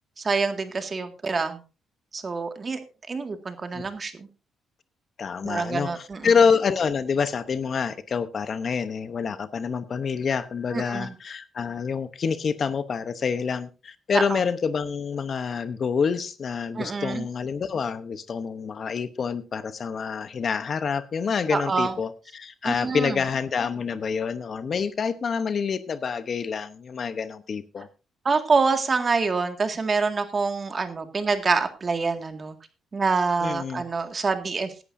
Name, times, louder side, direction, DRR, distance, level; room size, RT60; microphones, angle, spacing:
voice 1, 0.2-1.6 2.1-2.8 3.1-4.3 5.4-6.3 10.7-11.1 14.1-14.4 16.8-17.3 21.5-21.9 22.6-23.2 28.2-32.5 32.9-34.7, right 4 dB, 35° right, 7 dB, 2.0 m, -26 dB
voice 2, 5.2-27.9 33.4-33.8, left 6 dB, 50° left, 13 dB, 0.9 m, -27 dB
17.0 x 11.0 x 2.7 m, 0.32 s
cardioid pair, 90°, 0 cm